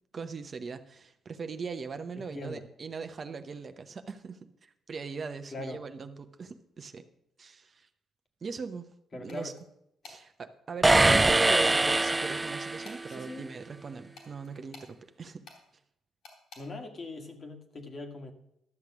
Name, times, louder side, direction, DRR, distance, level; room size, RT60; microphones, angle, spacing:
voice 1, 0.1-7.0 7.4-7.9 8.4-8.9 9.2-9.5 10.0-15.4, right 5 dB, 40° right, 8 dB, 0.8 m, -39 dB
voice 2, 2.3-2.7 5.5-5.8 9.1-9.5 11.0-11.6 13.1-13.5 16.6-18.3, left 2 dB, 40° left, 5 dB, 1.7 m, -41 dB
sound 1, 9.3-9.6 10.0-10.2 11.2-11.6 12.2-13.2 14.1-14.9 15.4-15.6 16.2-16.6, left 4 dB, 75° left, 3.3 m, -50 dB
sound 2, 10.8-13.1, right 2 dB, 15° right, 0.3 m, -23 dB
12.0 x 6.6 x 6.0 m, 0.80 s
cardioid pair, 90°, 0 cm